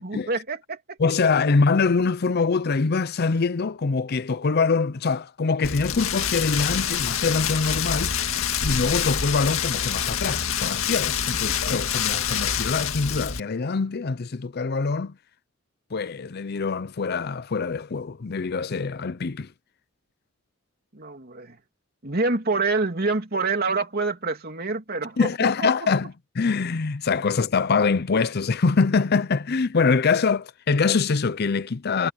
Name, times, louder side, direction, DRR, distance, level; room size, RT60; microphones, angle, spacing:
voice 1, 0.0-1.0 11.5-11.6 20.9-21.6 22.0-25.5, right 3 dB, 45° right, 3.0 m, -27 dB
voice 2, 1.0-8.2 8.6-15.2 15.9-19.5 25.2-32.1, left 4 dB, 50° left, 0.6 m, -24 dB
Rain, 5.6-13.4, left 8 dB, 80° left, 2.0 m, -26 dB
head